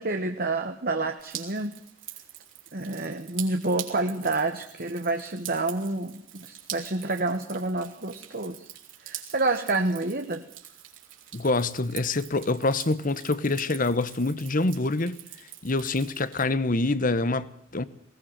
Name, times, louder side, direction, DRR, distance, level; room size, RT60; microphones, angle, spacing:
voice 1, 0.0-1.7 2.7-8.7 9.0-10.4, right 2 dB, 45° right, 1.4 m, -28 dB
Drip, 1.2-16.4, right 12 dB, 65° right, 4.4 m, -44 dB
voice 2, 11.3-15.2 15.6-17.8, left 2 dB, 40° left, 1.1 m, -26 dB
20.5 x 19.0 x 7.6 m
head